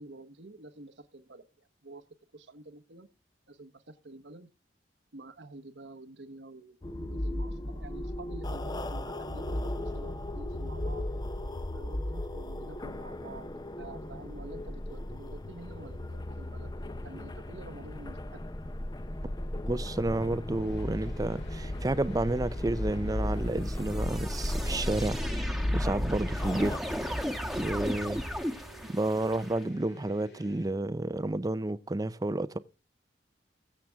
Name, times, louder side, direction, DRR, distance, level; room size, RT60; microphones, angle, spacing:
voice 1, 0.0-2.0 2.3-3.1 3.5-4.5 5.1-11.0 11.7-13.5 13.8-18.4, right 2 dB, 80° right, 1.1 m, -48 dB
sound 1, 6.8-26.8, left 1 dB, 25° left, 0.7 m, -35 dB
voice 2, 19.7-26.7 27.1-27.2 27.6-28.2 28.9-32.6, right 2 dB, 20° right, 0.5 m, -31 dB
sound 2, 20.5-30.8, equal, 65° left, 2.6 m, -53 dB
sound 3, 22.5-29.6, equal, ahead, 1.2 m, -36 dB
22.0 x 7.6 x 3.5 m
head